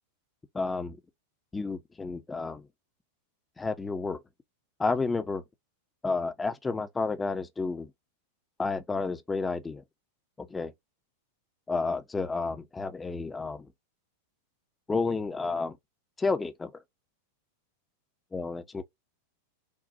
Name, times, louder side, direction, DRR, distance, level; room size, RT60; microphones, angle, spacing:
voice 1, 0.5-1.0 1.5-2.6 3.6-4.2 4.8-5.4 6.0-7.9 8.6-9.8 10.4-10.7 11.7-13.7 14.9-15.8 16.2-16.8 18.3-18.8, left 4 dB, 10° left, 0.9 m, -31 dB
6.8 x 2.6 x 2.6 m
figure-of-eight pair, 90°, 0 cm